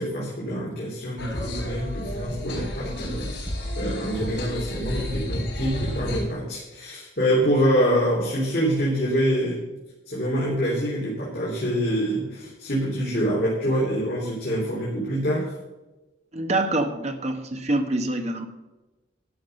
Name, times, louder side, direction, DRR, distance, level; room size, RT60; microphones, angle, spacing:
voice 1, 0.0-3.5 3.8-9.6 10.1-15.5, equal, 50° left, -6 dB, 3.5 m, -25 dB
sound 1, 1.2-6.3, left 1 dB, 75° left, 4.9 m, -31 dB
voice 2, 16.3-18.5, right 2 dB, 35° right, 6 dB, 1.2 m, -25 dB
12.0 x 7.0 x 6.6 m, 1.1 s
head